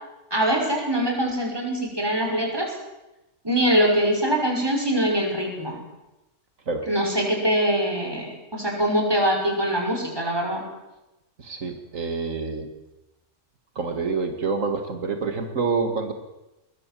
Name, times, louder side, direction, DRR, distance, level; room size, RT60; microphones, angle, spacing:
voice 1, 0.3-2.7 3.4-5.8 6.9-10.6, equal, 20° right, 1 dB, 6.0 m, -23 dB
voice 2, 11.4-12.7 13.8-16.1, right 4 dB, 85° right, 6 dB, 2.3 m, -27 dB
21.5 x 20.5 x 7.6 m, 0.96 s
omnidirectional pair, 1.3 m